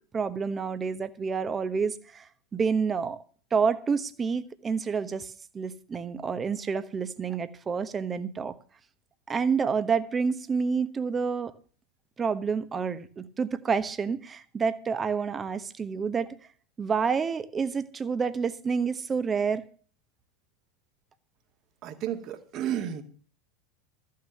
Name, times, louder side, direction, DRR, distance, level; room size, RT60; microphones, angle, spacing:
voice 1, 0.1-2.2 2.5-3.2 3.5-8.5 9.3-11.5 12.2-16.3 16.8-19.6, right 5 dB, 20° right, 1.2 m, -28 dB
voice 2, 21.8-23.0, right 10 dB, 40° right, 2.1 m, -32 dB
14.0 x 6.7 x 7.8 m
figure-of-eight pair, 85°, 0 cm